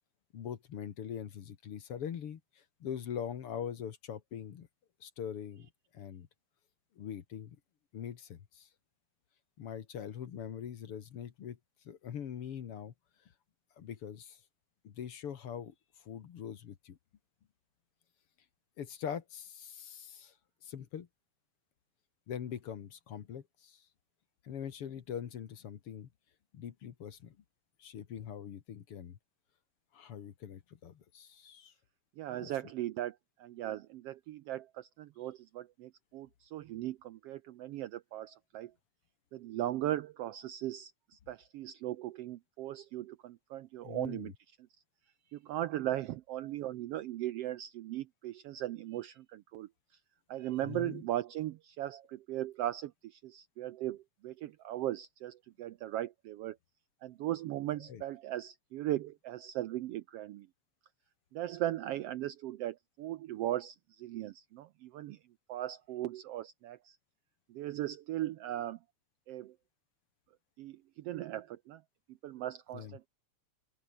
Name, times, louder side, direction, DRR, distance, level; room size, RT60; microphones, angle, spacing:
voice 1, 0.3-4.7 5.0-6.3 7.0-7.6 7.9-8.7 9.6-11.6 11.8-12.9 13.8-14.4 14.8-17.0 18.8-20.3 20.6-21.1 22.3-23.9 24.4-26.1 26.5-27.4 27.8-29.2 29.9-31.7 32.4-32.5 43.8-44.3 50.6-51.0 57.9-58.0 72.7-73.0, left 8 dB, 55° left, 2.2 m, -43 dB
voice 2, 32.2-38.7 39.3-44.3 45.3-49.7 50.3-56.6 57.0-60.5 61.3-65.2 65.5-67.0 67.5-68.8 69.3-69.5 70.6-71.8 72.2-73.1, right 13 dB, 75° right, 1.4 m, -38 dB
open air
omnidirectional pair, 3.3 m